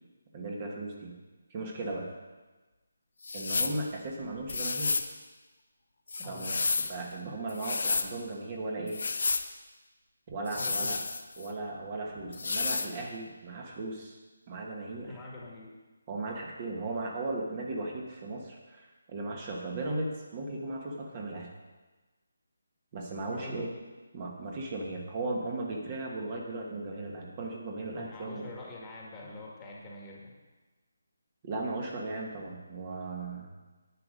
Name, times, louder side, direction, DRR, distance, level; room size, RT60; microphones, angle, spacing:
voice 1, 0.3-1.2 1.5-2.1 3.3-5.0 6.3-6.6 6.9-9.0 10.3-11.0 11.4-14.2 14.5-15.2 16.1-21.5 22.9-23.7 24.1-28.5 31.4-33.5, right 2 dB, 30° right, 0 dB, 1.5 m, -36 dB
sound 1, 3.2-3.8 4.5-5.1 6.1-7.0 7.5-8.1 8.9-9.5 10.5-11.5 12.3-12.9, left 4 dB, 65° left, 0.7 m, -31 dB
voice 2, 10.6-11.0 15.1-15.8 23.3-23.8 27.9-30.3, left 2 dB, 15° left, -3 dB, 1.7 m, -45 dB
10.5 x 8.8 x 5.2 m, 1.2 s
figure-of-eight pair, 165°, 0 cm